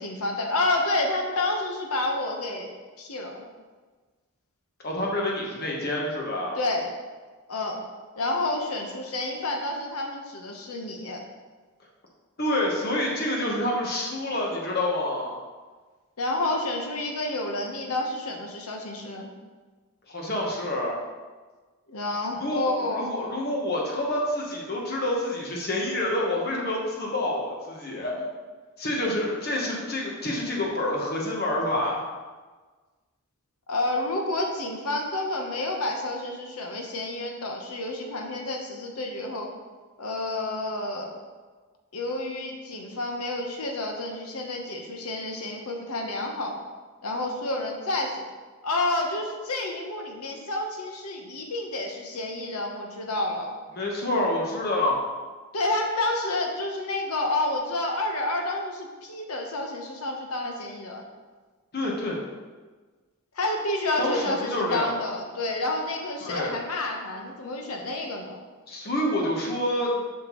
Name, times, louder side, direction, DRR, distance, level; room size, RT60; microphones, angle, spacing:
voice 1, 0.0-2.7 3.0-3.4 6.5-7.0 7.5-7.8 8.2-11.2 16.2-19.3 21.9-23.1 33.7-39.5 40.0-41.2 41.9-46.5 47.0-48.2 48.6-53.6 55.5-61.0 63.4-68.4, left 2 dB, 85° left, 2 dB, 1.0 m, -29 dB
voice 2, 4.8-6.6 12.4-15.4 20.1-21.0 22.4-28.3 28.8-32.0 53.8-55.0 61.7-62.2 64.0-65.1 66.2-66.5 68.7-70.0, left 1 dB, 45° left, -2 dB, 1.1 m, -27 dB
7.5 x 5.8 x 3.1 m, 1.4 s
head